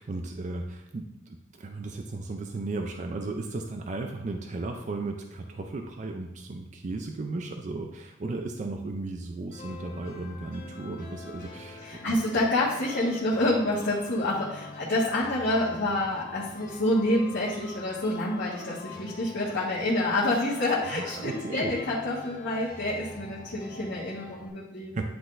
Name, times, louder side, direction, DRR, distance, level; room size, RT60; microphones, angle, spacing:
voice 1, 0.0-12.1 20.9-21.7 24.9-25.1, right 2 dB, 40° right, 4 dB, 0.4 m, -35 dB
sound 1, 9.5-24.5, left 3 dB, 50° left, 1.1 m, -45 dB
voice 2, 11.8-24.9, left 1 dB, 65° left, -9 dB, 1.4 m, -28 dB
10.5 x 3.9 x 2.5 m, 0.98 s
head